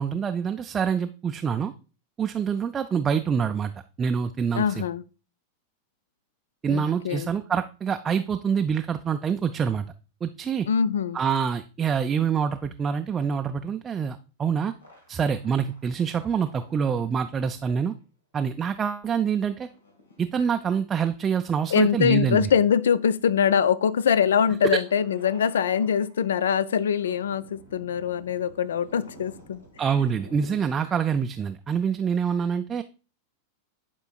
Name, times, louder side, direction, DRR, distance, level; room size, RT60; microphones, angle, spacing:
voice 1, 0.0-1.7 2.2-4.8 6.6-9.8 10.2-10.7 11.1-14.7 15.1-17.9 18.3-19.7 20.2-22.5 29.8-32.8, right 7 dB, 25° right, 0.3 m, -26 dB
voice 2, 4.5-5.0 6.7-7.3 10.7-11.2 21.7-29.6, left 7 dB, 70° left, 0.3 m, -23 dB
sound 1, 14.8-17.9 19.2-20.7 21.2-21.6 21.9-22.6 23.2-23.3 24.6-31.0, left 1 dB, 90° left, 1.6 m, -51 dB
10.0 x 4.4 x 2.3 m
figure-of-eight pair, 95°, 0 cm